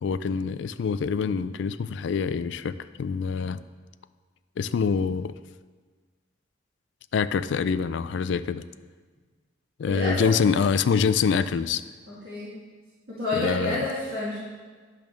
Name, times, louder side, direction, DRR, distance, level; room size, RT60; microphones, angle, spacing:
voice 1, 0.0-3.6 4.6-5.3 7.1-8.6 9.8-11.8 13.3-13.9, left 6 dB, 70° left, 13 dB, 0.3 m, -25 dB
voice 2, 9.9-10.3 12.2-12.5 13.1-14.3, left 2 dB, 50° right, -10 dB, 2.3 m, -28 dB
10.5 x 3.5 x 6.1 m, 1.5 s
head